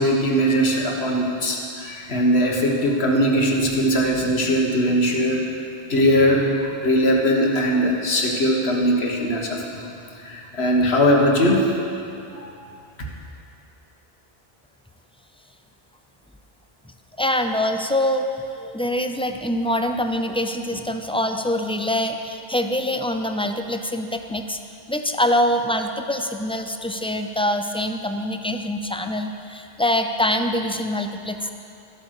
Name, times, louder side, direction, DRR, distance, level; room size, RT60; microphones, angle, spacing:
voice 1, 0.0-5.4 5.9-9.8 10.2-11.7 12.3-12.5, equal, 80° left, 0 dB, 1.8 m, -20 dB
voice 2, 17.2-18.3 18.6-24.6 24.9-31.5, left 1 dB, 10° left, 5 dB, 0.3 m, -24 dB
14.0 x 8.3 x 6.6 m, 2.6 s
omnidirectional pair, 1.1 m